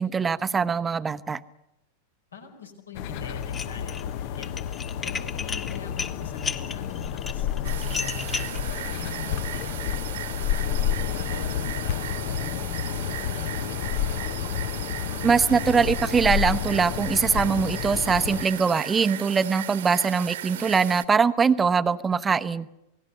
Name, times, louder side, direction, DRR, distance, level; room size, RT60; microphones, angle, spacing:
voice 1, 0.0-1.4 15.2-22.7, right 5 dB, 15° right, 13 dB, 0.9 m, -22 dB
voice 2, 2.3-4.6 5.0-9.8 10.5-14.4, left 4 dB, 75° left, 5 dB, 5.0 m, -42 dB
sound 1, 2.9-18.4, left 10 dB, 45° left, 0.9 m, -30 dB
Dishes pots and pans, 3.4-4.0 4.4-8.6, left 5 dB, 20° left, 1.7 m, -33 dB
sound 2, 7.6-21.1, right 12 dB, 60° right, 1.4 m, -37 dB
28.0 x 20.0 x 6.9 m, 0.92 s
figure-of-eight pair, 90°, 0 cm